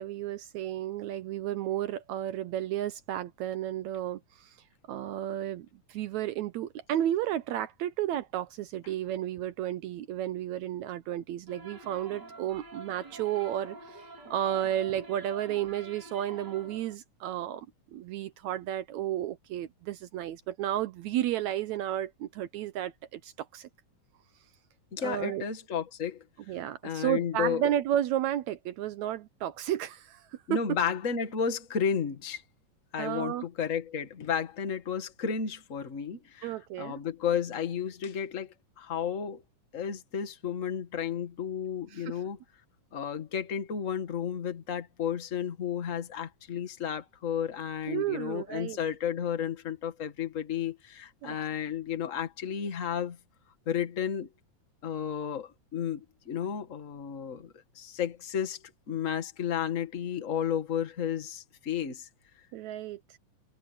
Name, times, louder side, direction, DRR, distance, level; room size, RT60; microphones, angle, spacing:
voice 1, 0.0-4.5 4.9-14.0 14.3-17.7 17.9-23.7 25.0-25.4 26.5-30.8 33.0-33.5 36.4-37.0 41.9-42.1 47.9-48.8 51.2-51.4 62.5-63.0, right 12 dB, 75° right, 1.8 m, -32 dB
sound 1, 11.5-16.9, right 2 dB, 35° right, 3.0 m, -47 dB
voice 2, 24.9-26.2 26.8-27.6 30.5-32.4 32.9-39.4 39.7-42.4 42.9-53.2 53.7-54.3 54.8-62.1, left 8 dB, 30° left, 1.6 m, -32 dB
open air
omnidirectional pair, 3.7 m